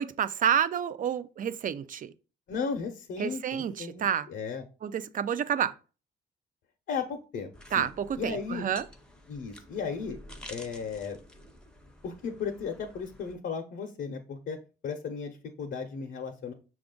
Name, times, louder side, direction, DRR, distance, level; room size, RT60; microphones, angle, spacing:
voice 1, 0.0-2.1 3.2-4.3 4.8-5.8 7.7-8.8, right 8 dB, 45° right, 0.4 m, -29 dB
voice 2, 2.5-4.6 6.9-7.9 8.2-8.6 9.3-10.2 10.5-11.2 12.0-14.6 14.8-16.5, left 5 dB, 60° left, 0.7 m, -35 dB
sound 1, 7.5-13.4, left 1 dB, 5° left, 0.6 m, -50 dB
5.9 x 2.4 x 3.7 m
cardioid pair, 90°, 20 cm